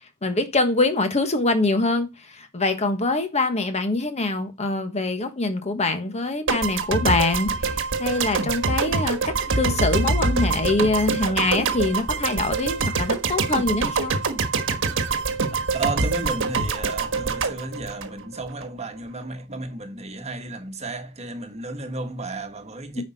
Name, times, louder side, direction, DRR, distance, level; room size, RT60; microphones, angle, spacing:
voice 1, 0.2-2.1 2.3-7.5 8.0-14.1, left 2 dB, 30° left, 1.3 m, -24 dB
sound 1, 6.5-18.7, right 4 dB, 60° right, 1.3 m, -25 dB
voice 2, 15.7-23.0, right 2 dB, 30° right, 1.4 m, -33 dB
9.8 x 5.5 x 4.2 m
head